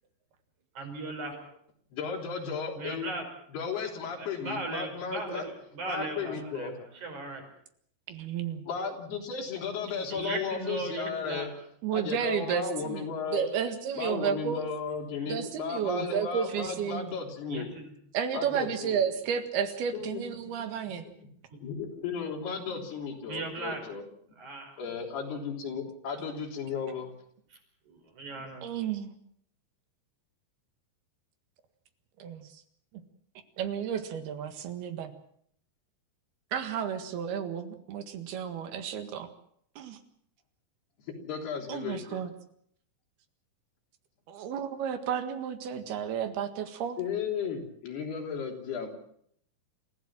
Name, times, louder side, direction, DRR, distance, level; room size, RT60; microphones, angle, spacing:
voice 1, 0.8-1.5 2.7-3.2 4.2-7.5 10.1-11.5 13.4-13.5 17.5-17.9 21.5-21.6 23.3-23.8 24.4-24.7 27.9-28.7, right 3 dB, 50° right, 3 dB, 6.5 m, -37 dB
voice 2, 2.0-3.2 3.5-5.4 5.9-6.7 8.7-11.5 11.9-13.4 13.9-17.7 18.3-19.1 19.9-20.5 20.8-20.9 21.5-24.0 24.8-27.1 41.1-42.2 47.0-48.9, left 6 dB, 85° left, 2 dB, 5.4 m, -35 dB
voice 3, 8.1-8.6 11.8-13.1 13.3-14.6 15.3-17.1 18.1-21.1 28.6-29.1 32.2-32.5 33.6-35.1 36.5-39.3 39.8-40.0 41.7-42.3 44.3-47.0, right 8 dB, 80° right, 8 dB, 3.7 m, -32 dB
27.5 x 15.5 x 7.5 m, 0.67 s
omnidirectional pair, 4.5 m